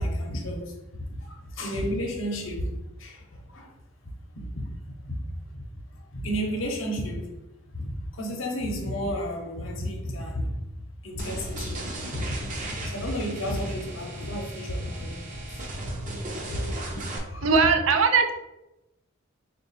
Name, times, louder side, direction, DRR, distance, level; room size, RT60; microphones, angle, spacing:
voice 1, 0.0-3.7 4.3-4.7 5.1-5.2 5.5-5.6 6.1-7.3 7.7-10.5 11.0-12.5 12.8-15.6 16.5-16.6 16.9-17.5, equal, 75° left, 0.8 m, -32 dB
sound 1, 11.2-17.2, right 1 dB, 40° right, 0.7 m, -36 dB
voice 2, 17.4-18.3, right 5 dB, 80° right, 0.5 m, -20 dB
3.7 x 2.4 x 4.1 m
head